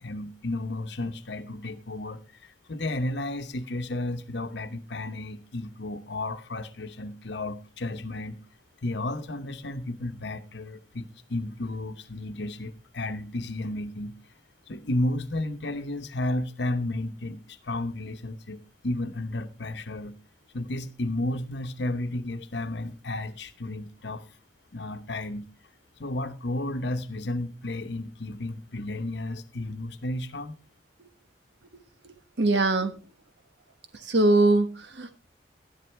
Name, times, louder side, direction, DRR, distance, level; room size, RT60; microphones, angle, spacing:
voice 1, 0.0-2.2 2.7-8.4 8.8-14.1 14.7-20.1 20.5-24.2 24.7-25.5 26.0-30.6, left 1 dB, 70° left, 1.0 m, -32 dB
voice 2, 32.0-33.0 33.9-35.2, right 2 dB, 70° right, 1.2 m, -23 dB
12.0 x 11.0 x 3.4 m
head